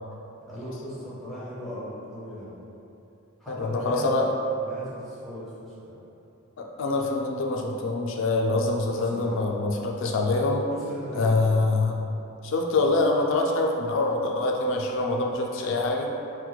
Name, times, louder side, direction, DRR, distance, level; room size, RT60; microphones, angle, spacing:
voice 1, 0.5-2.6 3.4-4.3 4.6-6.0 8.9-9.4 10.7-11.6, equal, ahead, -11 dB, 0.5 m, -38 dB
voice 2, 3.5-4.3 6.6-10.6 11.1-12.0 12.4-16.1, left 2 dB, 60° left, 0 dB, 0.3 m, -25 dB
4.2 x 2.2 x 2.2 m, 2.9 s
head